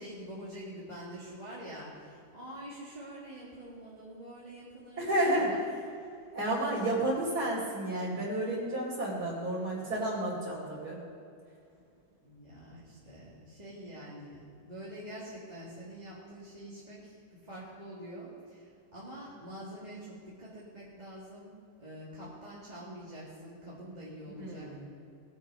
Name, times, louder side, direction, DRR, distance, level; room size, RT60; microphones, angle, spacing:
voice 1, 0.0-5.0 5.5-5.6 12.2-21.5 21.8-24.7, equal, 25° right, -8 dB, 2.3 m, -46 dB
voice 2, 5.0-5.5 6.3-11.0 24.4-24.8, right 1 dB, 70° right, -8 dB, 3.3 m, -31 dB
20.0 x 7.3 x 5.5 m, 2.4 s
omnidirectional pair, 1.7 m